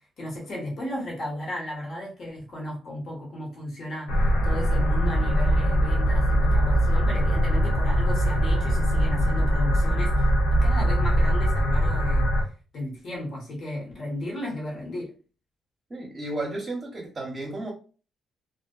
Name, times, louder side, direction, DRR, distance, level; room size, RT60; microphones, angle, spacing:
voice 1, 0.2-10.3 10.6-12.2 12.7-15.1, left 1 dB, 55° left, 1.2 m, -34 dB
sound 1, 4.1-12.4, equal, 85° left, 0.7 m, -22 dB
voice 2, 15.9-17.7, right 2 dB, 30° right, 0.8 m, -33 dB
2.4 x 2.1 x 2.4 m
cardioid pair, 90°, 0 cm